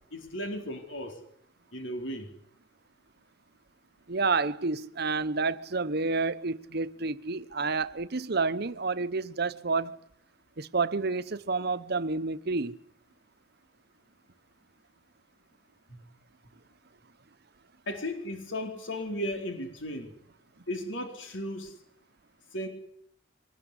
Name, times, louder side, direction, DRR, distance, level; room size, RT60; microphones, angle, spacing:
voice 1, 0.1-1.2 1.7-2.3 15.9-16.0 17.9-20.1 20.7-21.7 22.5-22.7, left 1 dB, 85° left, 4.2 m, -35 dB
voice 2, 4.1-10.0 10.6-12.8, right 4 dB, 55° right, 1.0 m, -29 dB
24.5 x 20.0 x 9.9 m
head